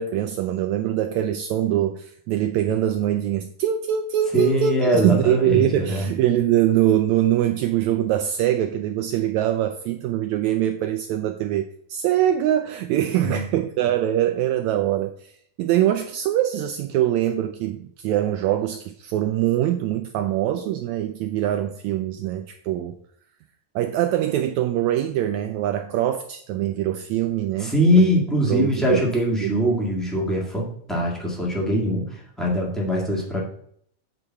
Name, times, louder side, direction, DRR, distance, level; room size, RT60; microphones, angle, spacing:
voice 1, 0.0-15.3 15.6-23.0 23.7-28.2 28.5-29.1 29.4-29.6, right 12 dB, 80° right, 1.6 m, -23 dB
voice 2, 4.3-6.0 13.2-13.4 27.6-33.4, equal, ahead, 0.6 m, -22 dB
8.3 x 3.9 x 5.7 m
omnidirectional pair, 3.7 m